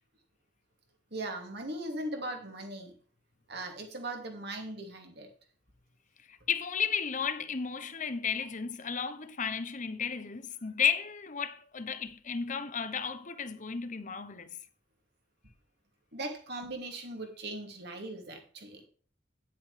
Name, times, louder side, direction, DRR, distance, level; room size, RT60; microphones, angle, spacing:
voice 1, 1.1-2.9 3.5-5.3 16.1-18.8, right 1 dB, 60° right, 2.7 m, -39 dB
voice 2, 6.5-14.6, left 6 dB, 40° left, 0.9 m, -33 dB
10.5 x 8.4 x 3.4 m
head